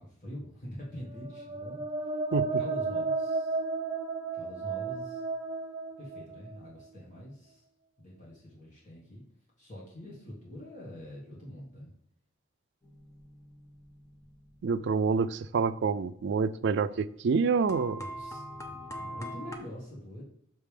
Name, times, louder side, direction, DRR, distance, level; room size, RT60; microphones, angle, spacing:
voice 1, 0.0-1.8 2.6-3.6 4.3-5.2 6.0-7.6 8.0-9.2 9.6-11.9 17.9-20.2, left 1 dB, 40° left, -5 dB, 1.7 m, -45 dB
sound 1, 1.1-6.9, right 3 dB, 20° right, 0.6 m, -33 dB
voice 2, 2.3-2.6 14.6-18.0, right 5 dB, 60° right, 14 dB, 0.3 m, -27 dB
sound 2, 12.8-15.4 15.9-16.0 16.3-16.4 17.7-19.6, equal, 15° left, 0.7 m, -43 dB
6.4 x 3.6 x 4.9 m, 0.75 s
head